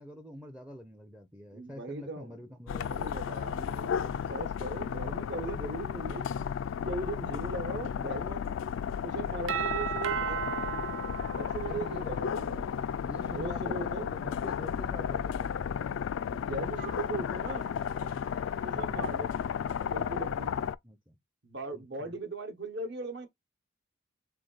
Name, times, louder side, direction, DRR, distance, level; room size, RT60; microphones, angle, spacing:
voice 1, 0.0-3.2 11.6-12.7 13.0-15.8 18.7-19.1 20.8-21.2 21.7-22.2, equal, 5° right, 0.5 m, -46 dB
voice 2, 1.5-2.4 2.7-6.3 6.8-8.5 9.0-10.4 11.4-12.9 13.2-14.1 16.3-17.7 18.6-19.3 19.8-20.5 21.4-23.3, right 2 dB, 55° right, 1.0 m, -39 dB
sound 1, 2.7-20.7, left 7 dB, 70° left, 0.3 m, -34 dB
Doorbell, 9.5-12.3, right 8 dB, 70° right, 0.6 m, -34 dB
Wind instrument woodwind instrument, 16.7-20.4, right 8 dB, 35° right, 0.8 m, -54 dB
3.7 x 3.4 x 3.9 m
head